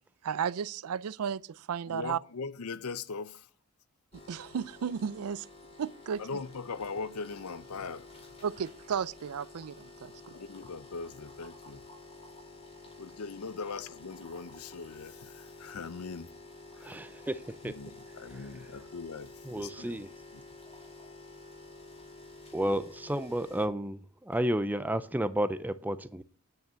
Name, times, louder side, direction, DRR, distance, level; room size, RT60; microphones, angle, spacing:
voice 1, 0.2-2.2 4.3-5.5 5.8-6.3 8.4-10.3, right 7 dB, 85° right, 0.4 m, -34 dB
voice 2, 1.9-3.5 6.2-8.1 10.3-11.8 13.0-16.3 16.8-17.0 17.6-20.0 20.3-20.4, left 4 dB, 80° left, 0.7 m, -40 dB
sound 1, 4.1-23.7, left 2 dB, 25° left, 2.1 m, -50 dB
voice 3, 16.8-17.7 18.3-18.4 19.5-20.1 22.5-26.2, right 1 dB, 10° right, 0.4 m, -32 dB
9.3 x 5.6 x 7.4 m
head